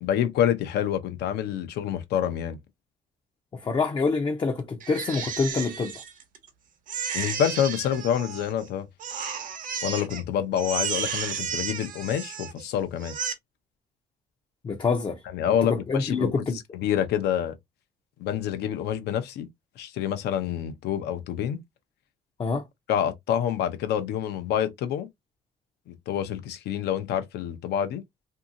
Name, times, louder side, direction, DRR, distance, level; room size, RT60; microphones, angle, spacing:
voice 1, 0.0-2.6 7.1-8.9 9.8-13.2 15.3-17.5 18.2-19.5 19.8-21.6 22.9-25.1 25.9-28.0, left 10 dB, 75° left, 0.6 m, -27 dB
voice 2, 3.5-6.0 14.6-15.2 15.5-16.6 22.4-22.6, left 4 dB, 25° left, 0.5 m, -26 dB
Crying sobbing, 4.8-6.5 6.9-8.7 9.0-10.2 10.5-12.6 13.0-13.3, right 7 dB, 50° right, 0.8 m, -33 dB
2.7 x 2.7 x 2.5 m
cardioid pair, 110°, 17 cm